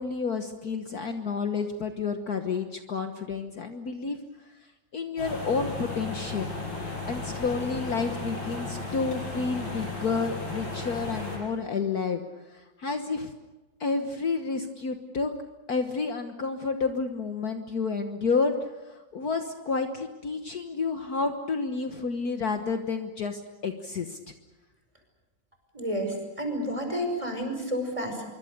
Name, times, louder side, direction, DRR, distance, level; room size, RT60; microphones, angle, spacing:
voice 1, 0.0-4.2 4.9-6.5 7.1-12.2 12.5-13.3 13.8-15.3 15.7-18.5 18.9-24.3, left 4 dB, 55° left, 6 dB, 1.7 m, -30 dB
sound 1, 5.2-11.4, left 3 dB, 80° left, 6.6 m, -35 dB
voice 2, 25.7-28.3, equal, 15° right, 4 dB, 5.5 m, -30 dB
26.0 x 24.0 x 6.8 m, 1.2 s
omnidirectional pair, 2.1 m